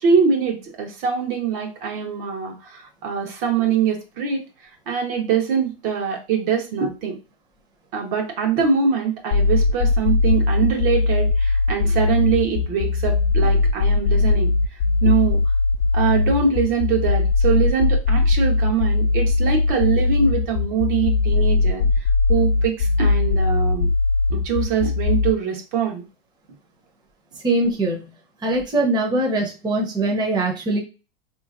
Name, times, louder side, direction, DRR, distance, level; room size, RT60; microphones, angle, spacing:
voice 1, 0.0-4.4 4.9-7.2 7.9-14.5 15.0-15.4 15.9-23.9 24.3-26.0, right 6 dB, 60° right, 1 dB, 1.3 m, -23 dB
sound 1, 9.3-25.3, left 3 dB, 65° left, 0.7 m, -19 dB
voice 2, 27.4-28.1 28.4-30.8, right 2 dB, 15° right, -1 dB, 0.8 m, -22 dB
3.9 x 3.0 x 2.5 m, 0.30 s
supercardioid pair, 125°, 30 cm